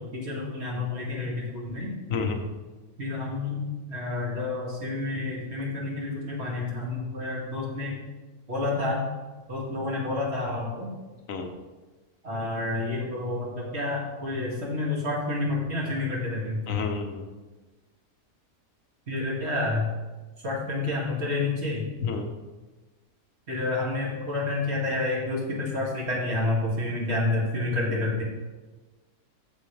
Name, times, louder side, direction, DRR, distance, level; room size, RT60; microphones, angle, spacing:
voice 1, 0.0-1.9 3.0-8.0 8.5-9.0 9.5-10.9 12.2-16.6 19.1-19.9 20.4-21.8 23.5-28.2, left 2 dB, 45° right, -3 dB, 2.5 m, -29 dB
voice 2, 16.7-17.2 22.0-22.3, left 5 dB, 65° left, 4 dB, 1.4 m, -29 dB
14.5 x 6.7 x 3.4 m, 1.2 s
omnidirectional pair, 1.6 m